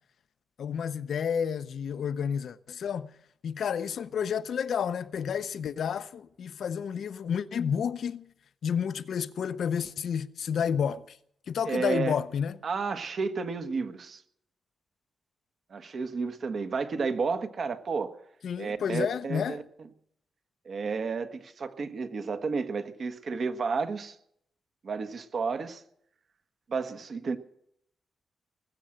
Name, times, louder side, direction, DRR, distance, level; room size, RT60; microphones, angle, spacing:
voice 1, 0.6-3.1 3.4-8.3 8.6-11.2 11.5-12.6 18.4-19.6, left 7 dB, 70° left, 0.6 m, -30 dB
voice 2, 11.6-12.2 12.6-14.2 15.7-18.1 18.6-19.6 20.6-24.2 24.8-25.8 26.7-27.4, right 4 dB, 55° right, 1.3 m, -31 dB
20.0 x 7.7 x 8.8 m
cardioid pair, 115°, 0 cm